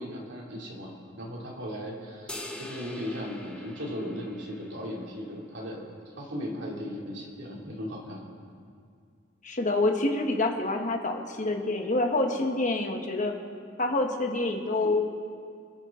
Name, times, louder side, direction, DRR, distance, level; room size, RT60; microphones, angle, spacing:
voice 1, 0.0-5.8 6.1-8.2, equal, 65° right, -2 dB, 2.8 m, -37 dB
sound 1, 2.3-4.8, left 1 dB, 5° left, 1.1 m, -43 dB
voice 2, 9.4-13.3 13.8-15.2, left 2 dB, 40° left, 3 dB, 1.3 m, -27 dB
27.0 x 9.9 x 3.8 m, 2.2 s
head